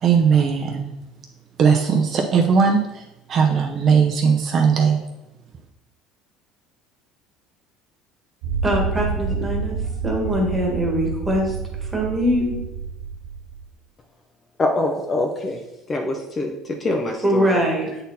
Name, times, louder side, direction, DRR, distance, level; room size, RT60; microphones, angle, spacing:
voice 1, 0.0-0.9 1.6-3.0 3.3-5.0, right 6 dB, 35° right, 0.7 m, -18 dB
sound 1, 8.4-13.7, right 5 dB, 75° right, 0.8 m, -28 dB
voice 2, 8.6-12.5 17.2-17.9, equal, 10° right, 1.6 m, -22 dB
voice 3, 14.6-15.6 15.9-16.6 16.8-17.6, left 2 dB, 20° left, 0.6 m, -24 dB
7.9 x 4.2 x 4.1 m
cardioid pair, 145°, 0 cm